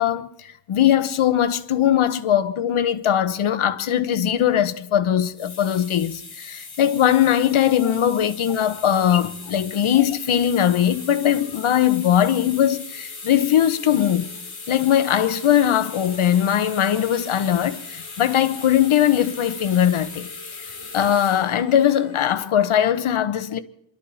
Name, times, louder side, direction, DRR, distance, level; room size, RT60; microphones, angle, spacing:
voice 1, 0.0-14.3 14.7-20.3 20.9-23.6, left 10 dB, 85° left, 1.0 m, -20 dB
sound 1, 5.2-22.5, left 4 dB, 50° left, 4.8 m, -38 dB
28.5 x 11.5 x 4.2 m
wide cardioid pair, 95°, 48 cm